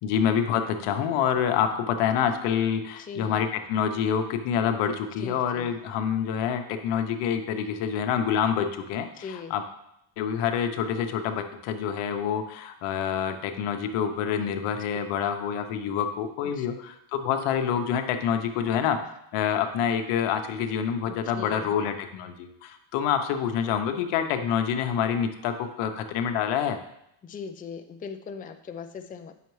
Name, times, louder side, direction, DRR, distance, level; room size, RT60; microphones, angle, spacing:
voice 1, 0.0-9.6 10.2-19.0 19.3-26.8, left 8 dB, 85° left, 7 dB, 0.9 m, -27 dB
voice 2, 3.0-3.4 5.2-5.7 9.1-9.5 16.4-16.7 21.0-21.7 27.2-29.3, left 6 dB, 20° left, 5 dB, 0.4 m, -39 dB
8.1 x 5.7 x 3.1 m, 0.78 s
cardioid pair, 105°, 49 cm